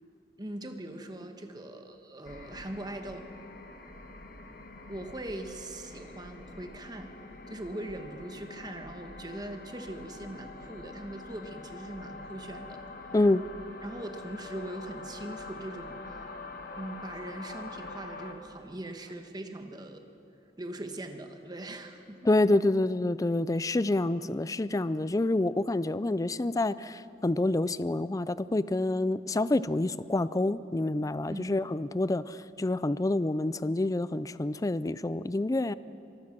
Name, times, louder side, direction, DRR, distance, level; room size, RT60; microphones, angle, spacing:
voice 1, 0.4-3.3 4.9-7.1 7.5-12.8 13.8-16.3 16.8-20.0 20.6-22.2 31.3-31.6, right 1 dB, 25° right, 5 dB, 1.5 m, -41 dB
sound 1, 2.2-18.3, left 3 dB, 55° left, 1.7 m, -45 dB
voice 2, 22.3-35.7, left 2 dB, 20° left, 16 dB, 0.4 m, -27 dB
25.5 x 19.5 x 6.1 m, 2.7 s
head